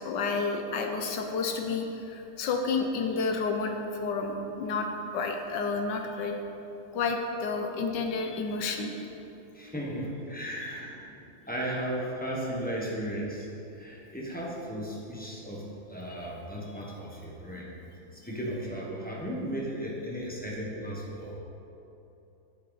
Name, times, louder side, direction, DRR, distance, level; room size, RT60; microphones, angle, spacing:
voice 1, 0.0-6.4 6.9-8.9 10.6-10.7 16.2-16.3 16.8-16.9, left 4 dB, 65° left, 3 dB, 1.3 m, -30 dB
voice 2, 9.5-11.1 11.5-13.5 13.8-17.7 18.1-21.3, equal, 5° left, -4 dB, 0.8 m, -35 dB
9.4 x 8.4 x 4.1 m, 2.9 s
omnidirectional pair, 2.3 m